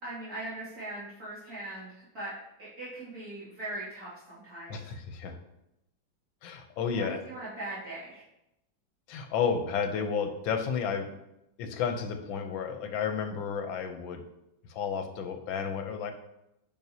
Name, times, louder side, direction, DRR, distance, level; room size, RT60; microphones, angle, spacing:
voice 1, 0.0-2.3 2.6-4.9 6.9-8.2, right 2 dB, 50° right, -11 dB, 3.0 m, -40 dB
voice 2, 4.7-5.4 6.4-7.2 9.1-11.1 11.6-14.2 14.7-16.1, left 6 dB, 85° left, 6 dB, 1.5 m, -32 dB
9.1 x 5.4 x 2.8 m, 0.86 s
omnidirectional pair, 2.1 m